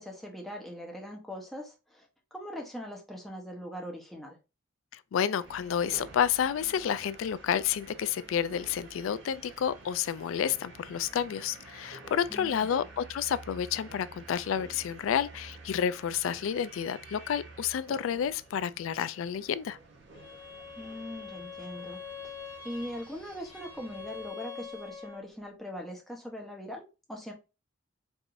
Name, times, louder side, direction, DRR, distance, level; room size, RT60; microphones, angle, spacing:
voice 1, 0.0-2.1 2.3-4.4 12.3-12.9 20.8-22.3 22.6-27.3, equal, ahead, 0.8 m, -41 dB
voice 2, 4.9-19.8, left 8 dB, 75° left, 0.3 m, -30 dB
sound 1, 5.4-24.3, right 3 dB, 55° right, 0.7 m, -51 dB
Bowed string instrument, 20.1-25.3, left 6 dB, 25° left, 1.0 m, -44 dB
4.6 x 2.6 x 2.5 m
head